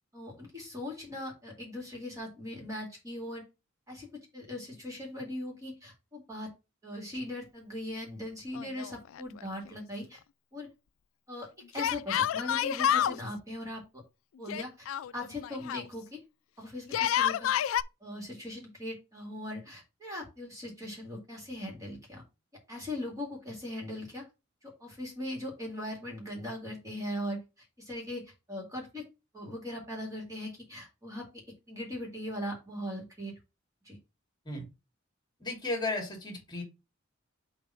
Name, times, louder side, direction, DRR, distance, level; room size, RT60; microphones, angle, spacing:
voice 1, 0.1-3.4 3.9-6.5 6.8-10.2 10.5-10.7 11.3-11.5 11.7-14.0 14.4-14.9 15.1-16.2 16.6-17.5 18.0-22.2 22.7-24.2 24.6-29.1 29.3-31.2 31.7-33.3 33.8-34.0, left 1 dB, 15° right, 0 dB, 2.1 m, -39 dB
Yell, 8.5-9.4 9.7-9.8 11.8-13.2 14.5-15.9 16.8-17.8, left 10 dB, 70° left, 0.3 m, -29 dB
voice 2, 35.4-36.6, left 2 dB, 20° left, 1 dB, 2.5 m, -34 dB
6.8 x 2.9 x 5.6 m, 0.26 s
head